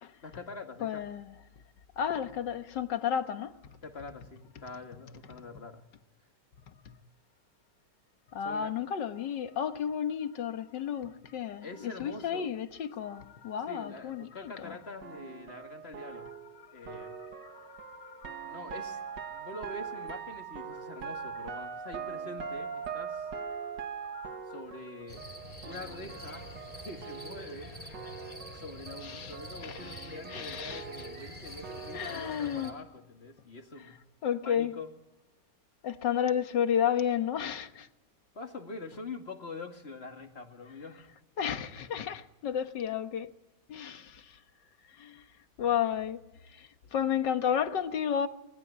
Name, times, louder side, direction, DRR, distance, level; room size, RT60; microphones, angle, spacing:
voice 1, 0.2-1.0 3.8-5.9 8.4-8.7 11.6-12.5 13.7-16.3 16.7-17.2 18.4-19.0 19.3-23.3 24.5-25.2 25.6-26.5 26.7-27.7 28.5-34.0 34.4-34.9 38.3-41.1, left 3 dB, 35° left, 2.5 m, -44 dB
voice 2, 0.8-1.3 2.0-3.5 6.9-7.0 8.3-14.8 16.8-17.1 17.4-18.5 19.3-19.4 23.9-24.4 29.0-29.3 29.6-30.8 31.9-32.7 34.2-34.7 35.8-37.9 41.4-43.3 43.7-44.4 44.9-45.2 45.6-46.2 46.5-48.3, left 8 dB, 85° left, 1.9 m, -32 dB
sound 1, 15.0-27.7 27.9-32.7, right 7 dB, 85° right, 2.1 m, -42 dB
sound 2, 25.1-32.7, equal, 20° left, 3.7 m, -46 dB
25.0 x 21.0 x 8.6 m
omnidirectional pair, 1.9 m